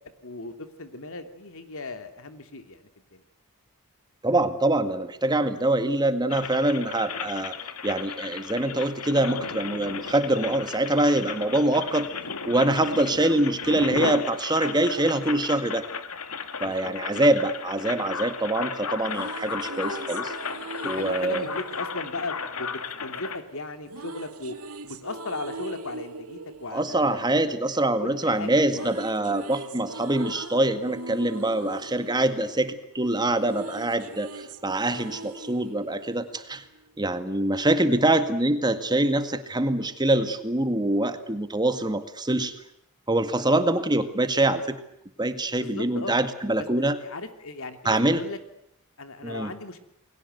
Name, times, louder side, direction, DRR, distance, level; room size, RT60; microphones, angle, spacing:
voice 1, 0.2-3.2 16.6-17.3 20.8-24.5 24.8-27.3 27.7-28.9 43.7-43.8 45.5-46.2 46.7-48.4 49.0-49.8, left 3 dB, 65° left, 8 dB, 3.1 m, -37 dB
voice 2, 4.2-7.5 7.8-12.1 12.5-15.9 16.6-20.3 20.8-21.4 26.7-36.6 37.0-42.6 43.1-44.8 45.2-47.0 47.9-48.2 49.2-49.5, right 1 dB, 20° right, 10 dB, 2.0 m, -24 dB
sound 1, 6.3-23.4, left 5 dB, 80° left, 2.4 m, -34 dB
sound 2, 18.8-23.0 23.9-28.1 28.4-36.9, right 2 dB, 75° right, 2.6 m, -41 dB
30.0 x 22.0 x 8.1 m, 0.77 s
head